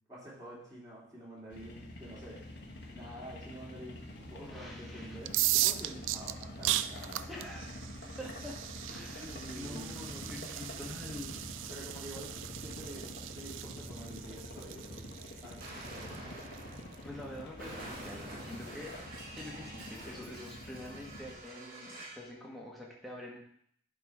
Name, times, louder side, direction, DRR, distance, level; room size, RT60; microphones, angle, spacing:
voice 1, 0.1-2.4 2.8-7.3 9.2-10.4 11.7-15.1 15.4-15.8, right 1 dB, 20° right, -8 dB, 3.0 m, -48 dB
sound 1, 1.5-21.4, left 1 dB, 60° left, 1.3 m, -47 dB
voice 2, 4.4-5.2 7.3-7.7 8.1-8.6 8.9-9.3 9.5-11.4 17.0-23.4, left 1 dB, ahead, -3 dB, 1.6 m, -46 dB
sound 2, 5.2-16.9, right 15 dB, 90° right, 0.3 m, -37 dB
Explosion, 15.6-22.3, right 1 dB, 50° right, 2.2 m, -47 dB
10.5 x 4.0 x 4.9 m, 0.67 s
head